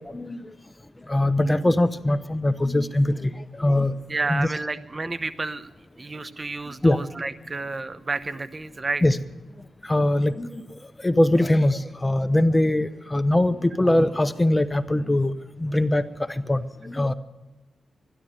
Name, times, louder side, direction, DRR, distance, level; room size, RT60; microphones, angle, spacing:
voice 1, 0.1-0.4 1.1-3.9 4.3-4.5 6.8-7.0 9.0-9.2 9.8-10.6 11.0-15.3 15.6-16.0 16.3-17.1, left 1 dB, 20° left, 12 dB, 0.8 m, -22 dB
voice 2, 4.1-5.7 6.0-9.0, right 3 dB, 40° right, 13 dB, 0.9 m, -30 dB
12.5 x 11.0 x 9.0 m, 1.1 s
cardioid pair, 55°, 0 cm